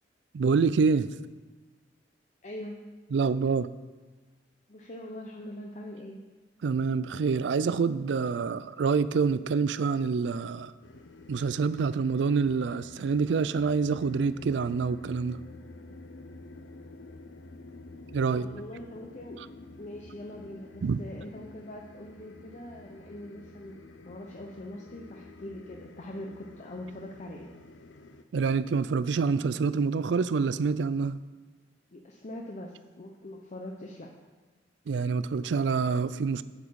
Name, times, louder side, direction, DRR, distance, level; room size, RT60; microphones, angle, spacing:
voice 1, 0.3-1.1 3.1-3.7 6.6-10.7 11.3-15.4 18.1-18.5 20.8-21.0 28.3-31.2 34.9-36.4, right 5 dB, 70° right, 15 dB, 0.4 m, -26 dB
voice 2, 2.4-2.8 4.7-6.2 18.4-19.4 19.8-27.5 31.9-34.1, left 1 dB, 40° left, 1 dB, 0.8 m, -42 dB
sound 1, 10.8-28.2, left 2 dB, 90° left, 0.7 m, -49 dB
8.6 x 8.3 x 4.7 m, 1.3 s
head